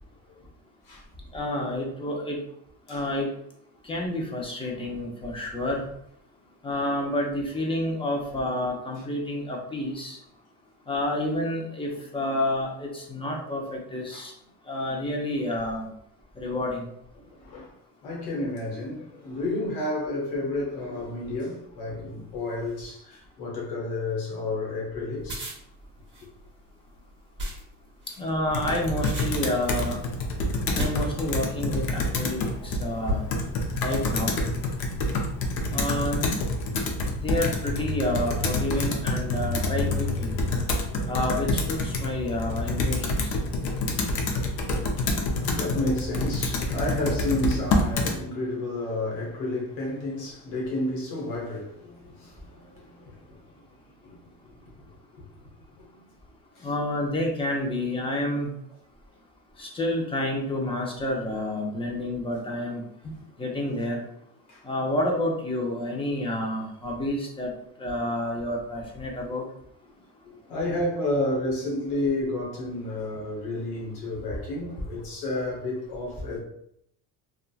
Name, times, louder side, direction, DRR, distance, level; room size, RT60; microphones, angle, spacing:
voice 1, 1.3-2.4 2.9-3.3 3.8-5.9 6.6-10.2 10.9-14.3 14.7-15.9 16.4-16.9 28.2-30.0 30.7-33.2 33.8-34.4 35.7-36.2 37.1-40.3 41.1-43.4 56.6-58.5 59.6-62.8 63.4-64.1 64.6-67.5 67.8-69.4, left 1 dB, 15° left, 0.6 m, -29 dB
voice 2, 2.9-3.2 11.9-12.0 13.6-13.8 14.1-14.3 17.2-17.7 18.0-25.5 44.6-53.4 54.0-54.7 55.1-55.2 55.8-55.9 56.5-56.7 64.5-64.6 70.2-76.4, left 2 dB, 85° left, 1.1 m, -31 dB
sound 1, 25.2-31.8 32.5-32.7 33.1-33.8, equal, 25° right, 0.9 m, -35 dB
Computer keyboard, 28.5-48.2, left 2 dB, 55° left, 0.7 m, -27 dB
2.7 x 2.4 x 2.3 m
supercardioid pair, 95°, 43 cm